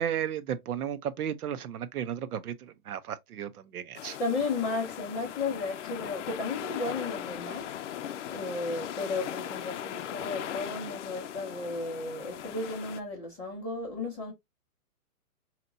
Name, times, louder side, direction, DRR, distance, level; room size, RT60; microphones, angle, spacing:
voice 1, 0.0-4.2, right 9 dB, 70° right, 0.8 m, -34 dB
sound 1, 3.9-13.0, left 10 dB, 50° left, 0.6 m, -39 dB
voice 2, 4.2-14.3, left 3 dB, 5° left, 0.5 m, -34 dB
4.9 x 2.9 x 2.6 m
hypercardioid pair, 150°, 45 cm